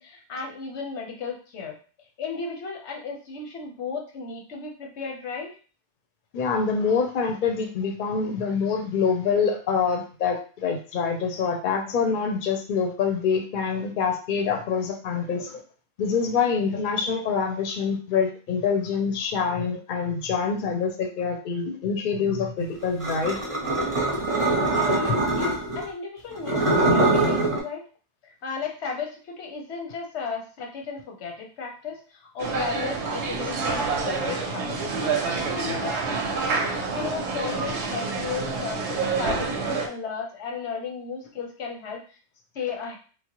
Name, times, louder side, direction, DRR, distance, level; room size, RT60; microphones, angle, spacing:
voice 1, 0.0-5.5 11.9-12.0 24.5-27.8 28.2-36.4 36.9-42.2 42.5-43.0, left 5 dB, 90° left, 1 dB, 1.1 m, -35 dB
voice 2, 6.3-15.6 16.0-23.4, left 5 dB, 55° left, 4 dB, 0.7 m, -25 dB
sound 1, 23.0-25.8 26.4-27.6, right 2 dB, 35° right, 0.6 m, -23 dB
sound 2, 32.4-39.9, right 4 dB, 90° right, 0.9 m, -28 dB
3.1 x 2.0 x 2.9 m, 0.38 s
omnidirectional pair, 1.1 m